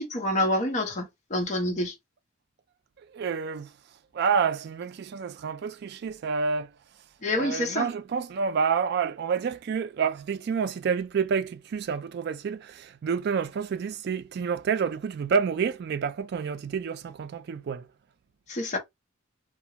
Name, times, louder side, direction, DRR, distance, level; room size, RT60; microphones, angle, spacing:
voice 1, 0.0-1.9 7.2-7.9 18.5-18.8, left 1 dB, 35° left, 0.7 m, -27 dB
voice 2, 3.0-6.8 7.4-17.9, right 6 dB, 55° right, 0.3 m, -29 dB
2.3 x 2.1 x 2.8 m
head